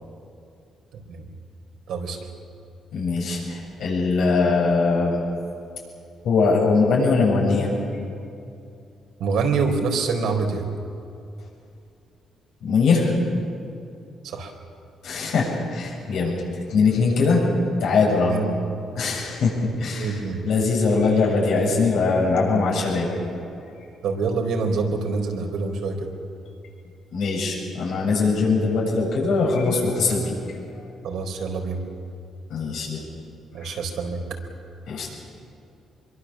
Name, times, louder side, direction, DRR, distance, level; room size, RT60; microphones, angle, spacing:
voice 1, 0.9-1.3 1.9-2.2 9.2-10.6 14.2-14.5 18.3-18.5 19.9-20.5 24.0-26.1 31.0-31.8 33.5-34.2, right 4 dB, 75° right, 2 dB, 3.9 m, -26 dB
voice 2, 2.9-5.2 6.2-7.7 12.6-13.1 15.0-16.4 16.7-17.4 17.8-18.4 18.9-19.5 19.8-20.2 20.4-23.1 27.1-30.3 32.5-33.0 33.6-33.7 34.9-35.1, left 4 dB, 75° left, -2 dB, 7.8 m, -21 dB
25.0 x 23.0 x 7.3 m, 2.6 s
cardioid pair, 90°, 0 cm